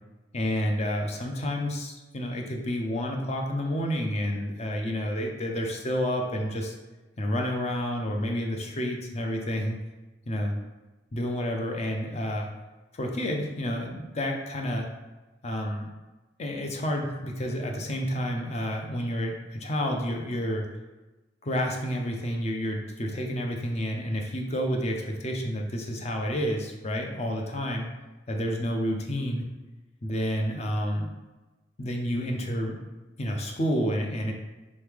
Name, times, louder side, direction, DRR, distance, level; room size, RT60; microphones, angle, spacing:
voice 1, 0.3-6.8 7.2-9.8 10.3-10.5 11.1-12.5 12.9-14.9 15.4-15.9 16.4-20.7 21.4-27.9 28.3-29.4 30.0-31.1 31.8-32.8 33.2-34.3, equal, 35° left, 2 dB, 0.5 m, -29 dB
3.6 x 3.1 x 3.5 m, 1.1 s
head